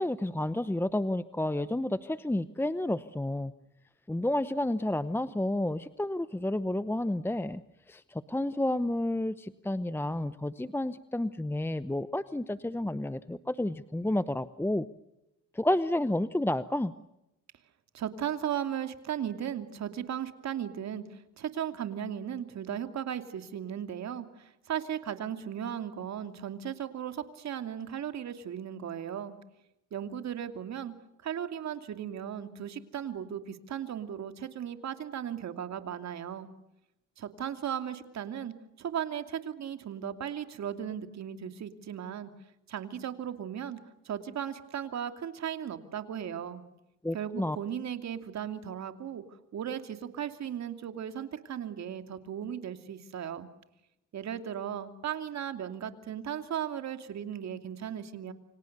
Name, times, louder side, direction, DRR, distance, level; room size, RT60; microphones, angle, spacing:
voice 1, 0.0-3.5 4.1-7.6 7.9-14.9 15.5-16.9 47.0-47.6, left 1 dB, 10° left, 14 dB, 0.9 m, -30 dB
voice 2, 17.9-29.4 29.9-30.9 31.2-36.5 37.2-42.3 42.7-43.8 44.0-46.6 47.1-49.2 49.5-53.5 54.1-58.3, right 9 dB, 60° right, 8 dB, 2.8 m, -36 dB
28.5 x 26.0 x 6.8 m, 0.88 s
cardioid pair, 90°, 30 cm